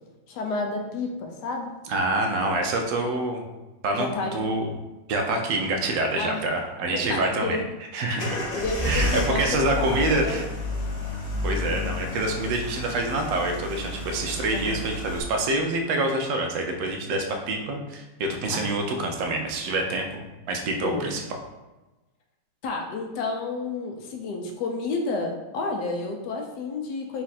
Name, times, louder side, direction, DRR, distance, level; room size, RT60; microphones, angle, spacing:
voice 1, 0.3-1.7 3.9-4.4 6.2-6.4 6.9-7.6 8.1-10.4 14.5-14.8 18.5-18.7 20.8-21.2 22.6-27.2, left 3 dB, 75° left, 2 dB, 1.1 m, -31 dB
voice 2, 1.9-3.4 3.8-4.7 5.1-7.6 7.9-8.4 8.8-10.4 11.4-21.2, right 2 dB, 85° right, 3 dB, 1.3 m, -26 dB
sound 1, 8.2-15.2, left 1 dB, 40° left, 0.6 m, -30 dB
4.2 x 2.4 x 4.1 m, 1.1 s
omnidirectional pair, 1.9 m